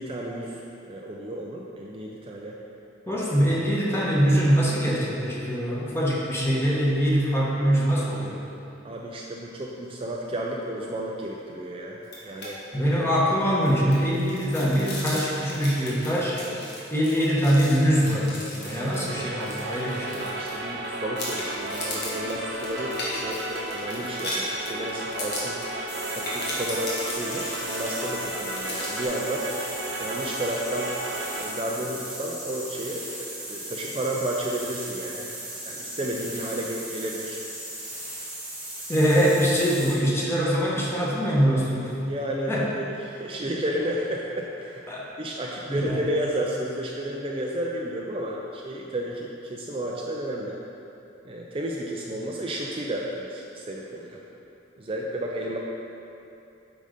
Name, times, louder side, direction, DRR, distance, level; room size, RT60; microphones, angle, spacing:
voice 1, 0.0-2.6 3.1-3.2 8.8-12.6 16.4-16.5 18.8-19.0 20.2-25.6 26.1-29.5 30.0-30.9 31.4-35.3 35.7-37.4 42.1-50.6 51.2-54.2 54.8-55.6, right 1 dB, 30° right, -2 dB, 0.5 m, -32 dB
voice 2, 3.1-8.4 12.7-16.4 16.9-20.3 38.9-42.0 42.5-42.7 44.9-45.1 45.7-46.0, equal, 15° left, -6 dB, 1.2 m, -23 dB
sound 1, 12.0-12.5 12.8-12.9 13.3-20.8 21.2-29.1, left 1 dB, 60° left, 1.6 m, -37 dB
sound 2, 18.6-31.4, right 1 dB, 65° right, 1.0 m, -34 dB
sound 3, 25.9-40.0, right 1 dB, 10° right, 1.5 m, -37 dB
8.7 x 3.9 x 5.1 m, 2.8 s
head